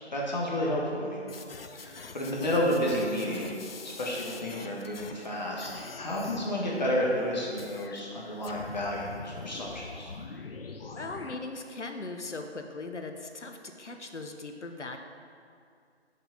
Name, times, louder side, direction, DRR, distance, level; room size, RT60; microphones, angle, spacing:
voice 1, 0.1-1.2 1.7-3.5 3.8-10.1, left 1 dB, 40° left, -3 dB, 1.5 m, -31 dB
sound 1, 1.3-5.3 5.6-6.5 7.6-8.0 8.4-11.4, left 4 dB, 60° left, 0.6 m, -44 dB
voice 2, 10.9-15.0, left 3 dB, 85° left, 4 dB, 0.9 m, -39 dB
6.7 x 5.8 x 6.3 m, 2.4 s
figure-of-eight pair, 155°, 34 cm